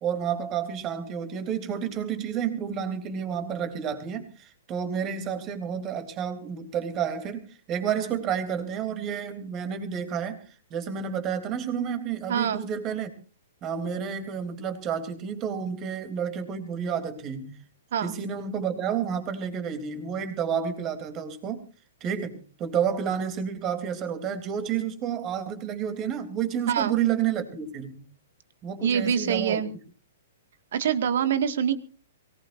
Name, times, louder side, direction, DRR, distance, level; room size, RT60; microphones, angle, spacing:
voice 1, 0.0-10.4 10.7-13.1 13.6-17.5 18.0-21.6 22.0-28.0 28.6-29.6, right 8 dB, 30° right, 8 dB, 3.2 m, -30 dB
voice 2, 12.3-12.7 17.9-18.1 26.7-27.0 28.8-29.7 30.7-31.7, right 8 dB, 60° right, 10 dB, 1.9 m, -25 dB
23.5 x 19.0 x 2.6 m, 0.37 s
figure-of-eight pair, 115°, 0 cm